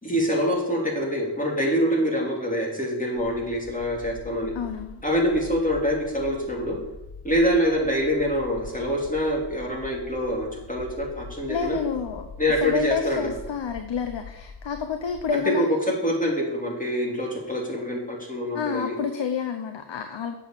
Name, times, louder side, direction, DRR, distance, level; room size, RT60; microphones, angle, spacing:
voice 1, 0.0-4.5 5.0-6.8 7.2-11.8 12.4-13.2 15.5-15.7 16.0-19.0, equal, 20° left, -2 dB, 3.0 m, -25 dB
sound 1, 3.1-15.3, left 3 dB, 65° left, 2.3 m, -43 dB
voice 2, 4.5-5.0 11.5-12.3 12.6-15.7 18.5-20.3, left 6 dB, 90° left, 7 dB, 0.7 m, -29 dB
7.7 x 6.0 x 7.5 m, 0.93 s
cardioid pair, 40°, 43 cm